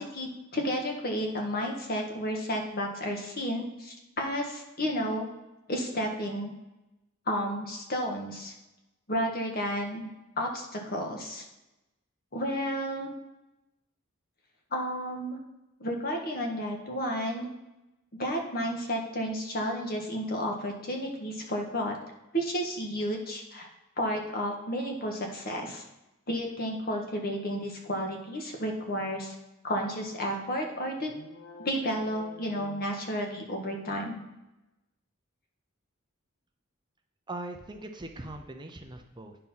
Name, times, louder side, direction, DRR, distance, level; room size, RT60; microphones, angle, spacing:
voice 1, 0.0-5.3 5.7-6.5 7.3-8.5 9.1-10.1 10.4-11.4 12.3-13.1 14.7-15.4 15.8-17.5 18.1-22.0 22.3-23.7 24.0-25.8 26.3-29.4 29.6-31.1 31.6-34.2, equal, 45° left, 1 dB, 1.6 m, -32 dB
sound 1, 31.0-33.5, left 3 dB, 70° left, 1.0 m, -49 dB
voice 2, 37.3-39.4, right 2 dB, 20° right, 4 dB, 0.6 m, -40 dB
9.4 x 4.4 x 5.5 m, 0.98 s
head